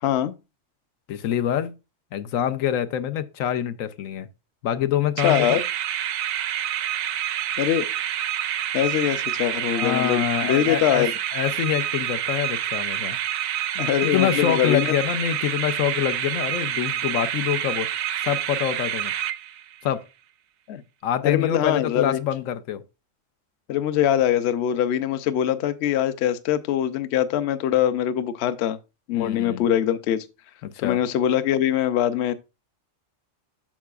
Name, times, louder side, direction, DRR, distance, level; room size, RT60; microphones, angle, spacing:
voice 1, 0.0-0.3 5.2-5.6 7.6-7.9 8.7-11.1 13.8-14.9 20.7-20.8 21.2-22.2 23.7-28.8 29.1-30.3 30.8-32.3, left 10 dB, 65° left, 0.8 m, -23 dB
voice 2, 1.1-1.7 2.1-4.3 4.6-5.6 9.7-11.1 11.3-13.2 14.0-17.9 18.2-19.1 19.8-20.0 21.0-22.8 29.1-29.7 30.6-31.0, left 10 dB, 85° left, 1.0 m, -26 dB
sound 1, 5.2-19.8, right 11 dB, 90° right, 1.0 m, -28 dB
13.5 x 4.7 x 2.3 m
omnidirectional pair, 1.4 m